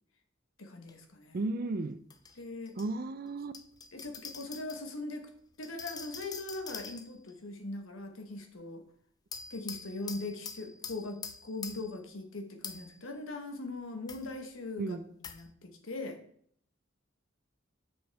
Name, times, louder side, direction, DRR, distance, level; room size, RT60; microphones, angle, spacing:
voice 1, 0.6-1.4 2.4-2.7 3.9-5.3 5.6-8.8 9.5-16.2, left 2 dB, 85° left, 1.1 m, -41 dB
sound 1, 0.9-1.0 2.1-2.9 3.5-4.8 5.6-7.3 9.3-12.0 12.6-13.0 14.1-14.3 15.2-15.5, left 5 dB, 20° left, 0.4 m, -45 dB
voice 2, 1.3-2.0 2.8-3.5 14.8-15.1, right 2 dB, 45° right, 0.4 m, -34 dB
7.7 x 6.2 x 3.4 m
head